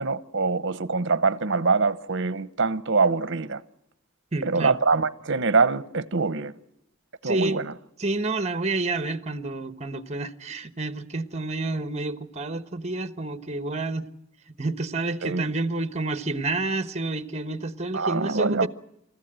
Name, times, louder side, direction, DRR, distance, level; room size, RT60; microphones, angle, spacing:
voice 1, 0.0-3.6 4.4-6.5 7.2-7.7 15.2-15.5 17.9-18.7, right 4 dB, 60° right, 0.9 m, -24 dB
voice 2, 4.3-4.7 7.2-7.6 8.0-14.1 14.6-18.7, right 2 dB, 35° right, 1.2 m, -29 dB
28.0 x 15.0 x 8.9 m
head